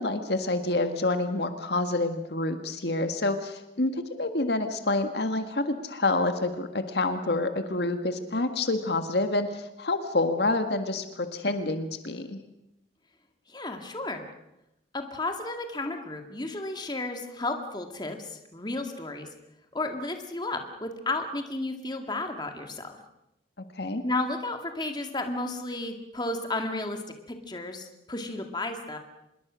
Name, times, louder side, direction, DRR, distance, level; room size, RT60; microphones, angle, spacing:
voice 1, 0.0-12.4 23.7-24.0, left 2 dB, 70° left, 8 dB, 1.7 m, -28 dB
voice 2, 13.5-14.2 14.9-19.3 19.7-23.0 24.0-27.0 27.3-29.0, left 2 dB, 25° left, 5 dB, 2.1 m, -33 dB
26.0 x 22.0 x 6.3 m, 0.88 s
head